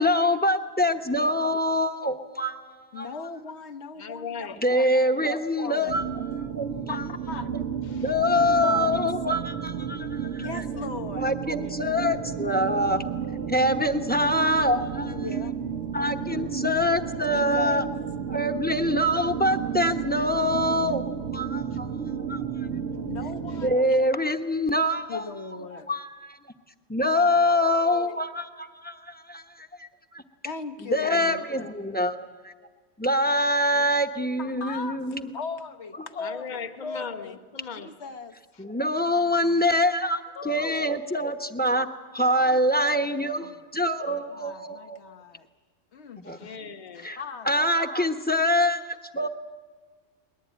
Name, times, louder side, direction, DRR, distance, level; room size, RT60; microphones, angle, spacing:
voice 1, 0.0-3.1 4.6-7.0 8.0-10.6 11.2-13.0 13.5-15.2 15.9-17.8 18.3-21.0 21.3-21.9 22.3-22.4 23.6-25.3 25.7-26.4 26.9-29.9 30.1-30.2 30.9-32.5 33.0-35.3 38.6-41.9 42.1-45.0 46.2-46.4 47.0-47.2 47.4-49.3, left 1 dB, 10° left, 6 dB, 0.9 m, -25 dB
voice 2, 2.9-4.9 5.3-6.1 6.9-7.5 8.3-9.0 10.4-11.4 15.0-15.5 17.3-17.9 23.0-24.0 25.1-25.9 27.4-28.3 30.4-31.7 34.4-35.0 35.3-37.4 37.8-38.3 40.3-40.9 42.3-42.6 43.4-43.7 44.3-45.5 45.9-46.2 47.2-47.7, left 4 dB, 60° left, 8 dB, 1.3 m, -38 dB
voice 3, 4.0-4.6 5.0-5.4 5.6-6.0 7.9-8.1 11.6-12.2 21.7-21.8 23.5-23.7 33.7-33.9 36.2-37.9 38.5-38.6 40.5-41.0 46.2-47.1 49.2-49.3, left 6 dB, 40° left, 7 dB, 1.2 m, -40 dB
sound 1, 5.9-23.8, right 7 dB, 70° right, 1.4 m, -32 dB
22.0 x 20.0 x 9.3 m, 1.4 s
omnidirectional pair, 1.3 m